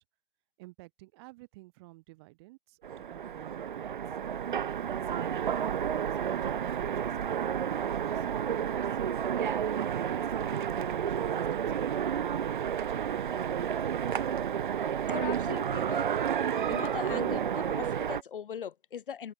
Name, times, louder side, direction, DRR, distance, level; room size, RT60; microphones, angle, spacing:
voice 1, 0.6-4.2 4.6-9.0 9.5-12.2 12.7-14.3, right 23 dB, 20° right, 2.7 m, -51 dB
Train, 2.8-18.2, right 8 dB, 45° right, 0.7 m, -31 dB
voice 2, 15.1-16.1 16.7-19.3, left 8 dB, 50° left, 1.7 m, -39 dB
open air
hypercardioid pair, 155°, 35 cm